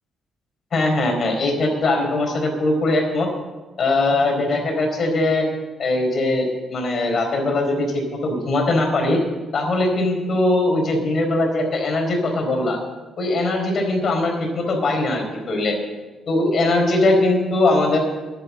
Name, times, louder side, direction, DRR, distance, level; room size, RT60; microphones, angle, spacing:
voice 1, 0.7-3.3 3.8-5.5 5.8-9.2 9.5-12.8 13.2-15.8 16.3-18.0, left 2 dB, 50° left, 2 dB, 4.2 m, -20 dB
11.0 x 9.6 x 8.5 m, 1.2 s
cardioid pair, 90°, 0 cm